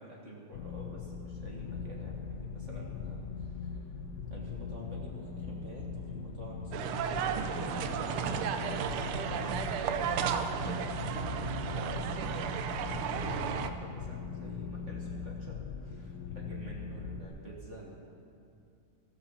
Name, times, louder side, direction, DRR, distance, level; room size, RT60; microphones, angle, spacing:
voice 1, 0.0-3.7 4.3-10.4 11.7-17.9, right 1 dB, 35° right, -2 dB, 1.8 m, -48 dB
sound 1, 0.5-17.3, left 5 dB, 70° left, 1.0 m, -40 dB
sound 2, 6.7-13.7, right 8 dB, 90° right, 1.6 m, -33 dB
13.5 x 13.5 x 5.6 m, 2.6 s
omnidirectional pair, 2.3 m